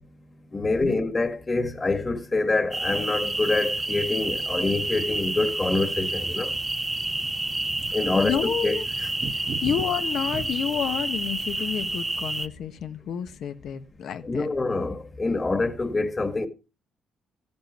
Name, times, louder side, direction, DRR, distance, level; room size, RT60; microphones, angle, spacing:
voice 1, 0.5-6.5 7.9-8.3 8.6-9.1 14.2-16.5, left 3 dB, 25° left, 1.8 m, -26 dB
sound 1, 2.7-12.5, right 2 dB, 15° right, 0.8 m, -29 dB
sound 2, 3.2-10.7, right 4 dB, 50° right, 1.5 m, -41 dB
voice 2, 8.1-8.8 9.3-14.5, left 9 dB, 70° left, 1.4 m, -30 dB
14.5 x 11.5 x 3.1 m
cardioid pair, 90°, 0 cm